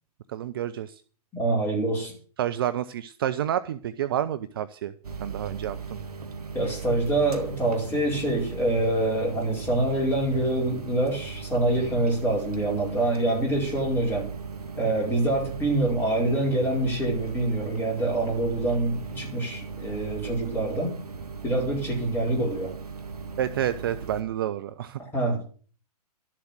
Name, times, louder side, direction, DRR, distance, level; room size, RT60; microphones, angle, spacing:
voice 1, 0.3-1.0 2.4-4.9 5.2-6.0 23.4-25.0, right 11 dB, 35° right, 12 dB, 0.6 m, -29 dB
voice 2, 1.3-2.1 6.5-14.3 14.8-21.0 21.4-22.7 25.0-25.5, right 2 dB, 10° left, -2 dB, 5.1 m, -25 dB
sound 1, 5.0-24.2, right 5 dB, 65° right, 1.7 m, -38 dB
12.5 x 7.5 x 8.0 m, 0.42 s
figure-of-eight pair, 120°, 21 cm